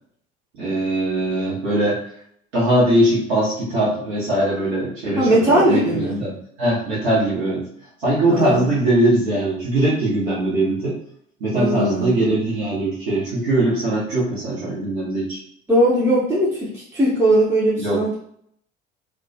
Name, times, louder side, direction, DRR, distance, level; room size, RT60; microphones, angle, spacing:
voice 1, 0.6-2.0 2.5-7.6 8.0-10.9 11.4-15.4 17.8-18.0, right 1 dB, 70° right, -8 dB, 0.9 m, -21 dB
voice 2, 5.2-6.2 8.3-8.7 11.5-12.3 15.7-18.1, right 1 dB, 5° right, -8 dB, 0.6 m, -19 dB
2.2 x 2.1 x 2.6 m, 0.67 s
figure-of-eight pair, 60°, 34 cm